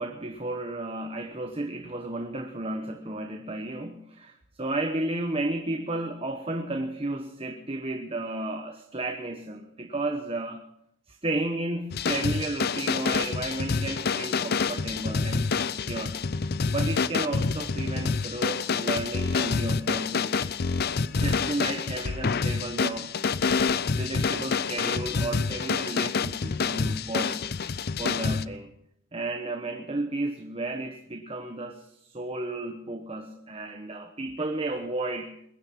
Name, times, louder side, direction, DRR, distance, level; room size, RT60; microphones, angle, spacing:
voice 1, 0.0-10.6 11.1-16.2 16.7-20.5 21.2-23.1 24.0-27.4 28.0-28.7 29.1-35.4, right 2 dB, 30° right, 5 dB, 1.1 m, -33 dB
sound 1, 11.9-28.4, left 5 dB, 50° left, 0.6 m, -27 dB
22.0 x 10.5 x 6.0 m, 0.74 s
head